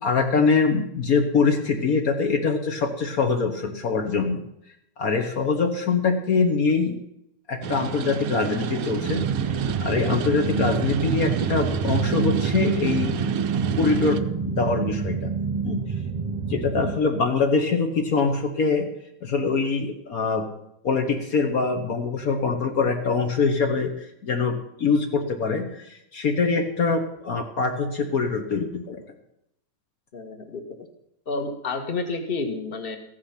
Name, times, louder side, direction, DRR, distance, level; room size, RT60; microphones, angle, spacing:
voice 1, 0.0-4.4 5.0-7.0 7.5-9.2 9.5-13.2 13.8-15.3 15.6-15.8 16.5-18.9 19.2-20.4 20.8-29.0, left 4 dB, 60° left, 4 dB, 1.6 m, -24 dB
sound 1, 7.6-14.2, right 8 dB, 65° right, 1.1 m, -30 dB
sound 2, 9.0-16.9, right 5 dB, 30° right, 1.0 m, -27 dB
voice 2, 30.1-30.6 31.3-33.0, left 3 dB, 35° left, 6 dB, 1.6 m, -30 dB
14.5 x 9.7 x 5.8 m, 0.79 s
omnidirectional pair, 1.7 m